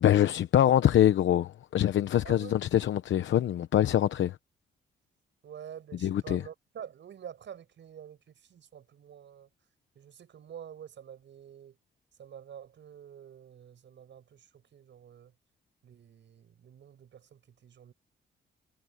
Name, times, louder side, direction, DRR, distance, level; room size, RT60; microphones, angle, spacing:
voice 1, 0.0-4.4 6.0-6.4, left 11 dB, 80° left, 0.9 m, -24 dB
voice 2, 2.2-2.6 5.4-9.5 9.9-11.8 12.2-15.3 15.8-17.9, right 9 dB, 75° right, 6.2 m, -48 dB
cardioid pair, 75°, 19 cm